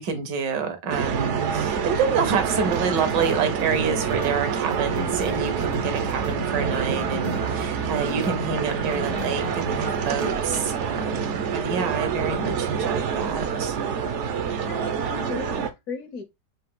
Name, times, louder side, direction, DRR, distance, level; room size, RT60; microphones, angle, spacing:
voice 1, 0.0-13.8, right 5 dB, 80° right, 1.6 m, -27 dB
sound 1, 0.9-15.7, right 7 dB, 65° right, 0.7 m, -27 dB
sound 2, 2.7-6.4 6.7-8.4 8.7-10.4, left 4 dB, 80° left, 0.6 m, -39 dB
voice 2, 14.3-16.2, left 4 dB, 60° left, 1.1 m, -36 dB
4.2 x 2.6 x 3.6 m
omnidirectional pair, 1.9 m